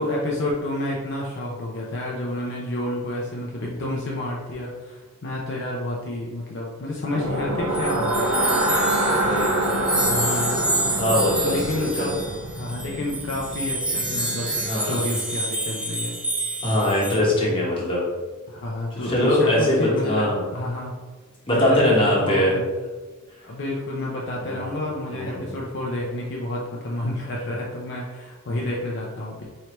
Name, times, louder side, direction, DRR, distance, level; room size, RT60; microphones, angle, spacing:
voice 1, 0.0-8.3 9.1-9.3 9.9-10.8 11.4-12.2 12.6-16.2 18.5-20.9 21.5-22.6 23.4-29.5, left 1 dB, 55° left, -3 dB, 0.5 m, -29 dB
sound 1, 7.1-15.1, right 1 dB, 90° right, 1.0 m, -26 dB
sound 2, 7.7-17.2, right 1 dB, 5° right, 0.5 m, -28 dB
voice 2, 9.1-10.0 11.0-12.1 14.6-15.1 16.6-18.0 18.9-20.4 21.5-22.5 24.4-24.8 25.1-25.6, left 1 dB, 25° left, -5 dB, 1.1 m, -22 dB
4.5 x 3.2 x 3.0 m, 1.3 s
head